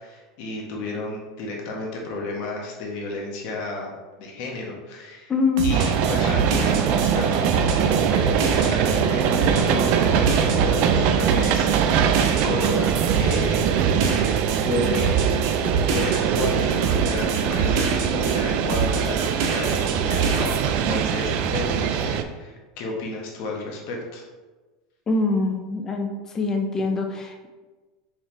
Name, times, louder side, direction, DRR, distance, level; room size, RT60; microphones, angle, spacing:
voice 1, 0.0-3.9 4.2-5.3 5.6-13.7 14.6-15.1 15.9-24.2, left 2 dB, 60° left, -1 dB, 1.2 m, -32 dB
voice 2, 5.3-5.7 25.1-27.5, left 3 dB, 20° left, 4 dB, 0.6 m, -24 dB
sound 1, 5.6-18.4 18.7-20.6, right 5 dB, 70° right, 0.7 m, -26 dB
sound 2, 5.7-22.2, right 8 dB, 50° right, 0.4 m, -22 dB
4.5 x 3.5 x 3.3 m, 1.2 s
supercardioid pair, 130°, 2 cm